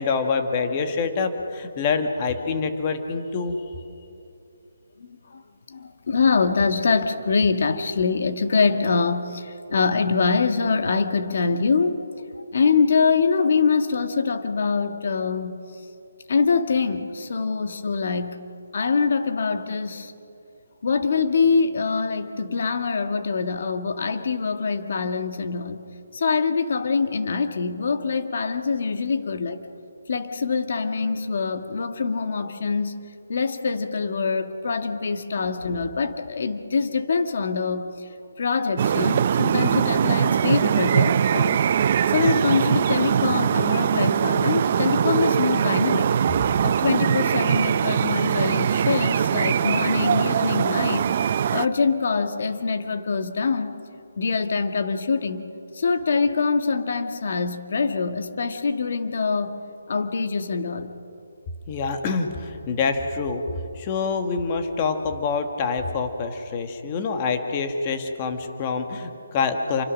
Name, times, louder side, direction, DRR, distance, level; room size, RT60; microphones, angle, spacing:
voice 1, 0.0-3.6 61.7-63.4 63.8-69.8, left 5 dB, 20° left, 6 dB, 1.6 m, -26 dB
voice 2, 5.0-5.4 5.7-12.1 12.3-15.6 16.3-18.4 18.7-20.1 20.8-25.8 26.1-29.6 30.1-33.0 33.3-38.1 38.4-46.1 46.6-51.1 51.5-53.7 54.2-55.4 55.7-59.6 59.9-60.9, left 5 dB, 50° left, 7 dB, 1.7 m, -24 dB
sound 1, 38.8-51.7, right 8 dB, 30° right, 0.5 m, -22 dB
29.0 x 24.5 x 6.4 m, 2.6 s
hypercardioid pair, 170°, 0 cm